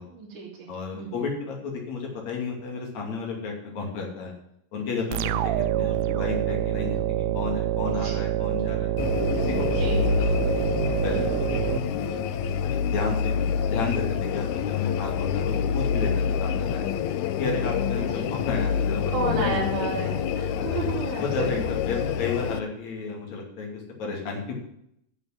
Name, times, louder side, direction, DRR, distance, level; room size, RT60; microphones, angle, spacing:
voice 1, 0.1-0.5 0.9-1.2 7.8-8.2 9.8-10.1 18.1-18.3 19.1-21.2, right 4 dB, 60° right, -5 dB, 4.1 m, -32 dB
voice 2, 0.7-4.3 4.7-9.0 9.4-10.6 11.0-13.3 13.7-16.1 16.4-17.0 17.4-19.7 20.5-20.7 21.1-24.5, left 4 dB, 55° left, 0 dB, 3.8 m, -32 dB
sound 1, 5.1-12.6, right 12 dB, 80° right, 1.9 m, -27 dB
sound 2, 9.0-22.6, left 7 dB, 85° left, 1.6 m, -27 dB
11.5 x 6.6 x 7.5 m, 0.73 s
omnidirectional pair, 4.1 m